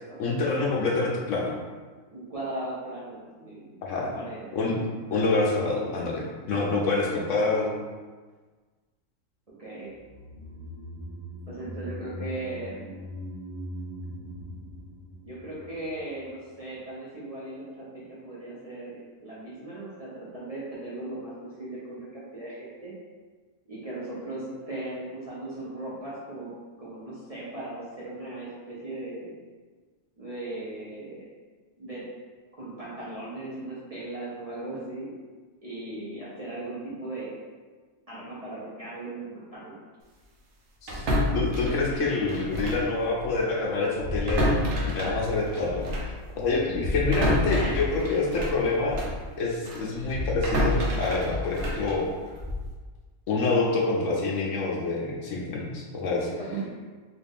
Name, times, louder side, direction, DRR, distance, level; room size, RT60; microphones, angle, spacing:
voice 1, 0.2-1.5 3.8-4.1 4.5-4.8 5.1-7.8 40.8-41.1 41.3-45.8 46.4-49.0 49.4-52.1 53.3-56.3, left 3 dB, 70° left, -2 dB, 1.0 m, -27 dB
voice 2, 2.1-3.8 4.1-4.5 9.6-9.9 11.5-13.0 15.2-22.9 23.7-26.5 26.8-29.3 30.2-31.2 31.8-32.0 32.6-35.1 35.6-37.4 38.1-39.8 47.5-48.2 56.4-56.6, right 2 dB, 35° right, -8 dB, 0.7 m, -38 dB
sound 1, 9.9-16.3 16.6-16.7, equal, 35° left, 1.4 m, -41 dB
sound 2, 40.9-42.9 43.2-43.4 44.0-49.2 49.6-52.7, left 1 dB, 65° right, 1.0 m, -28 dB
4.0 x 2.4 x 3.5 m, 1.4 s
omnidirectional pair, 1.4 m